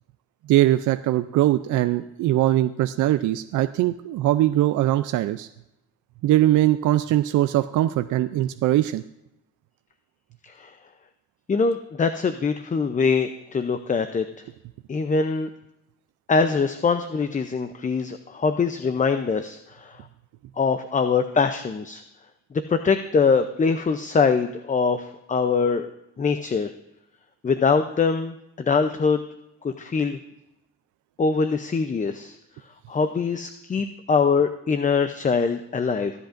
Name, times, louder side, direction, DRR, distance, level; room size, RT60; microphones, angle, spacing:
voice 1, 0.5-5.5 6.2-9.0, right 14 dB, 80° right, 10 dB, 0.5 m, -21 dB
voice 2, 10.4-10.7 11.5-14.2 14.9-15.5 16.3-20.0 20.6-22.0 22.7-25.9 26.2-26.7 27.4-29.2 29.6-30.2 31.2-32.4 32.9-36.1, left 5 dB, 25° left, 9 dB, 0.6 m, -23 dB
23.5 x 8.1 x 2.6 m, 0.89 s
cardioid pair, 90°, 30 cm